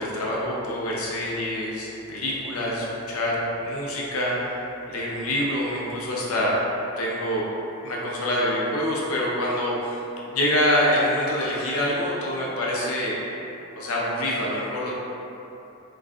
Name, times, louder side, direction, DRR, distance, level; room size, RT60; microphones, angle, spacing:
voice 1, 0.0-6.6 7.0-7.4 7.8-10.0 10.3-13.2 13.8-15.0, left 1 dB, 90° left, -4 dB, 0.7 m, -26 dB
3.1 x 2.4 x 3.6 m, 3.0 s
head